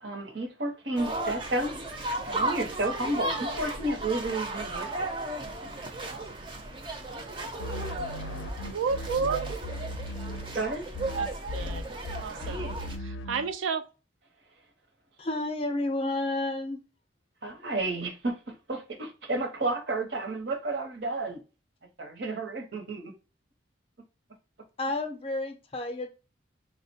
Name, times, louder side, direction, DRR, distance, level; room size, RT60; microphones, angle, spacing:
voice 1, 0.0-1.7 2.3-5.1 10.5-10.9 12.3-12.8 17.4-21.4 22.0-23.1, right 2 dB, 65° right, 0.8 m, -32 dB
sound 1, 1.0-13.0, right 2 dB, 25° right, 0.5 m, -35 dB
sound 2, 7.6-10.7 10.9-13.5, left 1 dB, 90° left, 0.4 m, -37 dB
voice 2, 8.3-9.5 11.2-12.7 13.0-13.8, right 5 dB, 85° right, 0.4 m, -32 dB
voice 3, 15.2-16.8 24.8-26.1, left 2 dB, 30° left, 0.5 m, -31 dB
3.7 x 2.1 x 2.7 m
head